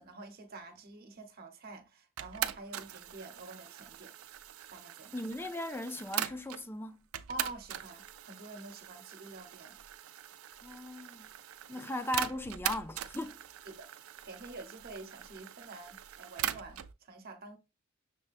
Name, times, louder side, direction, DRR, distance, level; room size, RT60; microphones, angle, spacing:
voice 1, 0.0-4.1 4.7-5.2 7.3-9.8 11.7-11.9 13.7-13.9 14.2-17.6, right 2 dB, 50° right, 0.9 m, -48 dB
sound 1, 2.2-6.6 7.1-16.9, right 11 dB, 85° right, 0.4 m, -41 dB
voice 2, 5.1-7.1 10.6-11.3 11.7-13.4, left 1 dB, 10° left, 0.4 m, -38 dB
6.3 x 2.2 x 2.4 m
head